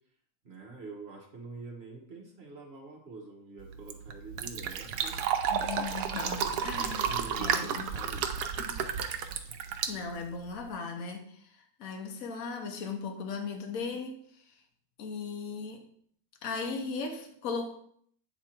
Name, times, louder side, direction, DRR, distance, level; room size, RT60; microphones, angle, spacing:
voice 1, 0.4-5.2 6.7-8.3, right 3 dB, 45° right, 1.4 m, -46 dB
Fill (with liquid), 3.6-10.7, right 7 dB, 80° right, 1.2 m, -32 dB
voice 2, 5.5-7.1 7.4-7.9 8.6-8.8 9.9-14.5 15.0-15.9 16.4-17.8, left 4 dB, 60° left, 1.3 m, -37 dB
8.6 x 3.5 x 4.3 m
omnidirectional pair, 1.7 m